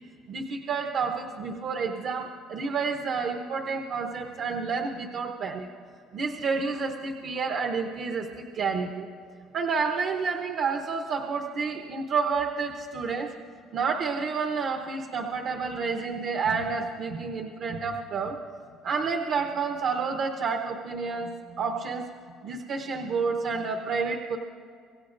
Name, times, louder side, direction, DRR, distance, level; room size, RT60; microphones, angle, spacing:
voice 1, 0.3-5.7 6.1-9.1 9.5-13.3 13.7-18.4 18.8-22.1 22.4-24.4, right 5 dB, 40° right, 4 dB, 0.8 m, -29 dB
26.0 x 17.0 x 2.6 m, 2.3 s
cardioid pair, 175°, 0 cm